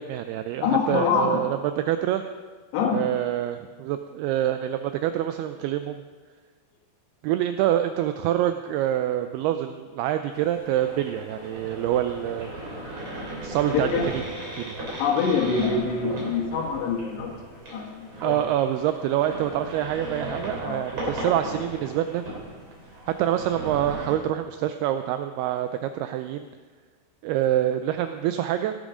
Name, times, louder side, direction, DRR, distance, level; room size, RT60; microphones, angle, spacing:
voice 1, 0.0-2.2 2.9-6.0 7.2-12.5 13.4-13.9 14.1-14.2 14.5-14.8 18.2-22.2 23.2-26.5 27.2-28.8, right 12 dB, 85° right, 9 dB, 2.3 m, -26 dB
voice 2, 0.6-1.4 2.7-3.1 13.7-14.0 15.0-18.4 20.6-20.8, left 5 dB, 75° left, -1 dB, 3.5 m, -25 dB
sound 1, 10.3-24.1, right 1 dB, 35° right, 4.6 m, -36 dB
17.0 x 10.5 x 5.0 m, 1.4 s
omnidirectional pair, 5.0 m